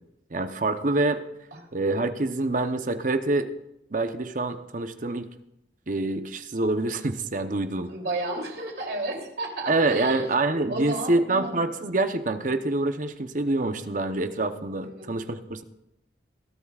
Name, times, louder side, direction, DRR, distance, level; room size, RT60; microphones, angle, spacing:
voice 1, 0.3-1.2 1.7-3.5 3.9-5.3 5.9-7.9 9.7-15.6, right 2 dB, 45° right, 8 dB, 0.9 m, -26 dB
voice 2, 7.9-10.3 10.7-11.6 14.8-15.3, right 2 dB, 65° right, 0 dB, 3.1 m, -32 dB
21.0 x 12.0 x 2.4 m, 0.86 s
head